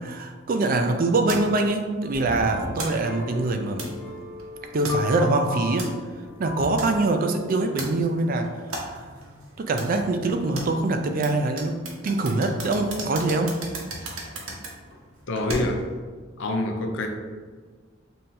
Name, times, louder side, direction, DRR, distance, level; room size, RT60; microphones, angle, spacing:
voice 1, 0.0-3.9 4.7-5.9 6.4-9.1 9.6-13.6, right 2 dB, 45° right, 5 dB, 0.4 m, -24 dB
sound 1, 1.3-16.0, right 2 dB, 90° right, 0.9 m, -38 dB
sound 2, 2.0-7.0, left 2 dB, 15° left, 1.1 m, -38 dB
voice 2, 15.3-15.9 16.4-17.1, left 1 dB, 65° left, 4 dB, 0.5 m, -26 dB
5.5 x 2.8 x 2.6 m, 1.5 s
head